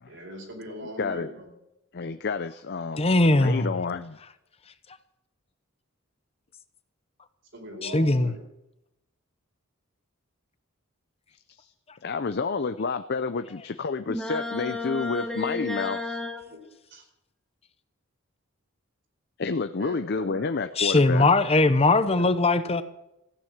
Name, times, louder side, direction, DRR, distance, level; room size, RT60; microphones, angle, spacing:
voice 1, 0.1-1.5 7.5-8.4 16.5-16.6 16.9-17.0 19.8-20.5 22.1-22.3, equal, 60° right, 1 dB, 4.6 m, -40 dB
voice 2, 1.9-4.2 11.6-11.7 12.0-16.2 19.4-21.3, left 4 dB, 50° left, 10 dB, 0.6 m, -30 dB
voice 3, 3.0-3.7 7.8-8.3 20.8-22.8, left 2 dB, 30° left, 12 dB, 0.9 m, -20 dB
sound 1, 14.1-16.4, left 3 dB, 5° left, 1.4 m, -32 dB
15.5 x 9.5 x 7.3 m, 0.86 s
head